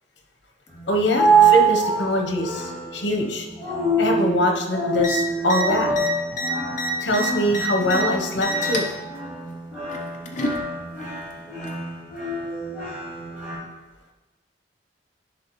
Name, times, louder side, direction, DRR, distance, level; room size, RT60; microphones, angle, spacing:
sound 1, 0.7-13.6, right 4 dB, 5° right, 2.0 m, -25 dB
voice 1, 0.9-3.5 4.0-5.9 7.0-8.9, left 1 dB, 80° left, 3 dB, 1.0 m, -23 dB
sound 2, 5.0-5.2 5.4-5.6 5.9-8.0 8.4-8.9 9.9-10.6 11.6-11.7, equal, 45° left, 0.7 m, -28 dB
10.5 x 3.8 x 3.1 m, 1.1 s
head